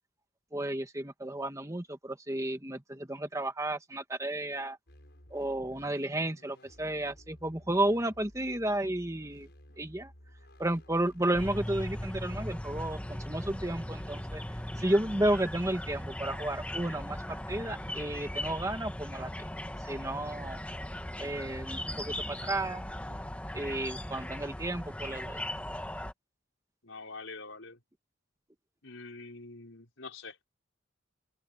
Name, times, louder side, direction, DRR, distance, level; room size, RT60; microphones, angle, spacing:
voice 1, 0.5-4.8 5.3-9.5 9.8-10.1 10.6-14.4 14.8-19.3 19.8-20.6 21.2-22.8 23.5-25.4, right 1 dB, 15° right, 1.5 m, -32 dB
sound 1, 4.9-13.1, equal, 55° left, 7.3 m, -56 dB
sound 2, 11.3-26.1, left 1 dB, 5° left, 1.2 m, -38 dB
voice 2, 26.8-27.8 28.8-30.5, left 3 dB, 75° left, 5.0 m, -45 dB
open air
head